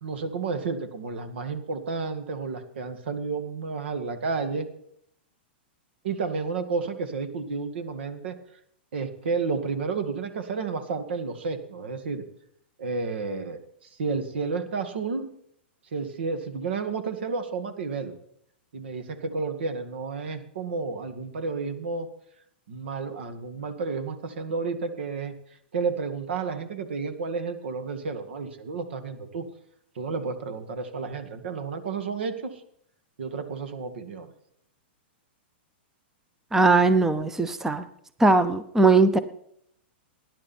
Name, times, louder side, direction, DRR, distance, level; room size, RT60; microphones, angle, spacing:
voice 1, 0.0-4.7 6.0-8.4 8.9-12.2 12.8-15.3 15.9-18.2 18.7-22.1 22.7-25.3 25.7-29.5 30.0-32.6 33.2-34.3, right 4 dB, 75° right, 8 dB, 2.0 m, -31 dB
voice 2, 36.5-37.8 38.2-39.2, right 3 dB, 5° right, 13 dB, 0.7 m, -19 dB
19.0 x 10.5 x 4.4 m, 0.71 s
hypercardioid pair, 140°, 6 cm